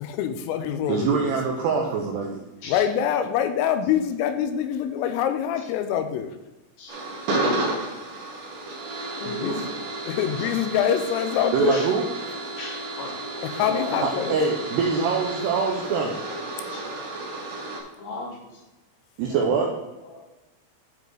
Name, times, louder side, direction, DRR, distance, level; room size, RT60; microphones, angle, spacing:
voice 1, 0.0-1.4 2.7-6.3 9.3-9.7 10.0-11.9 13.4-14.4, left 9 dB, 85° left, 8 dB, 3.2 m, -25 dB
voice 2, 0.9-2.4 11.5-12.0 14.0-16.2 19.2-19.7, right 5 dB, 80° right, 0 dB, 2.4 m, -24 dB
sound 1, 6.9-17.8, right 2 dB, 60° right, 4.3 m, -32 dB
voice 3, 9.2-9.6 11.7-11.9 12.6-13.1 13.6-14.3 16.7-16.8 18.0-18.6 19.3-19.4 20.0-20.2, left 2 dB, 65° left, -1 dB, 3.3 m, -34 dB
12.0 x 4.9 x 4.0 m, 1.0 s
omnidirectional pair, 5.9 m